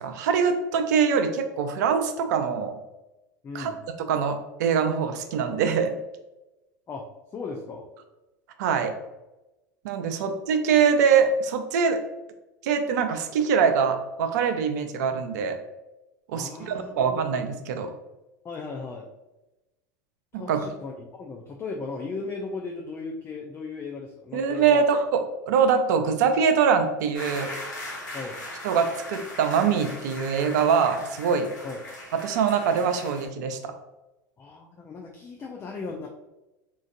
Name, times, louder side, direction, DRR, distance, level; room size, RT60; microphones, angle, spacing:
voice 1, 0.0-2.7 3.5-3.7 4.1-5.9 8.6-8.9 9.8-12.0 12.6-15.6 16.3-17.9 20.3-20.6 24.3-25.2 25.5-27.5 28.6-31.5 32.1-33.7, right 6 dB, 70° right, 7 dB, 0.5 m, -23 dB
voice 2, 3.4-3.8 6.9-7.0 7.3-7.9 16.3-17.2 18.4-19.1 20.3-24.9 28.1-28.4 31.6-31.8 34.4-36.1, left 4 dB, 25° left, 1 dB, 0.4 m, -36 dB
sound 1, 27.1-33.3, left 1 dB, 85° left, 1.0 m, -39 dB
3.8 x 2.5 x 2.5 m, 1.0 s
hypercardioid pair, 85°, 10 cm